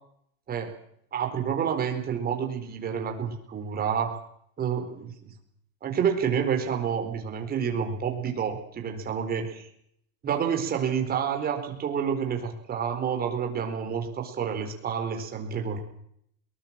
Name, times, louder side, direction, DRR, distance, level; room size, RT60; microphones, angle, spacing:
voice 1, 1.1-4.2 4.6-5.3 5.8-9.7 10.2-15.8, right 7 dB, 20° right, 4 dB, 4.3 m, -29 dB
22.0 x 20.0 x 7.5 m, 0.70 s
supercardioid pair, 160°, 40 cm